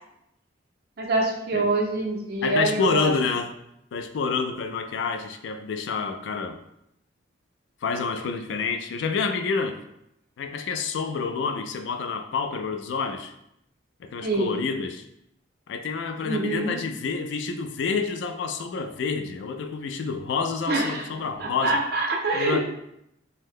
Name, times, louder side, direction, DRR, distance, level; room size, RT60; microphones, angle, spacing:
voice 1, 1.0-3.1 14.2-14.6 16.2-16.8 20.7-21.1 21.4-22.6, right 2 dB, 55° right, 0 dB, 0.5 m, -25 dB
voice 2, 2.4-3.5 3.9-6.6 7.8-9.8 10.4-13.3 14.0-15.1 15.7-21.8 22.3-22.6, left 5 dB, 75° left, 7 dB, 0.3 m, -28 dB
2.7 x 2.1 x 3.5 m, 0.79 s
head